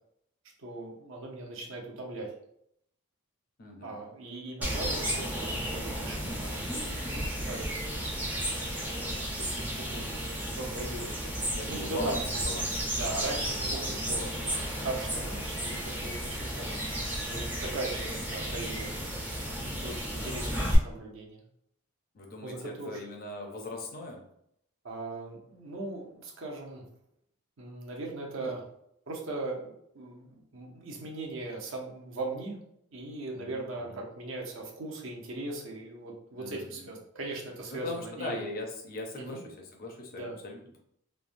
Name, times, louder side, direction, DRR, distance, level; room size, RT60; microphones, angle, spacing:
voice 1, 0.6-2.3 3.8-7.7 9.4-10.2 10.6-12.2 12.9-16.7 17.3-19.0 19.6-21.4 22.4-23.0 24.8-26.8 27.6-28.6 29.1-32.6 32.9-38.4 39.1-39.2 40.1-40.4, right 2 dB, 60° right, 0 dB, 0.6 m, -39 dB
voice 2, 3.6-4.0 9.7-10.2 11.5-12.8 19.6-19.9 22.1-24.2 28.4-28.5 33.3-34.0 36.4-36.9 37.7-40.8, left 2 dB, 40° left, 1 dB, 0.5 m, -40 dB
sound 1, 4.6-20.8, equal, 10° right, 0.4 m, -33 dB
3.1 x 2.1 x 2.5 m, 0.73 s
head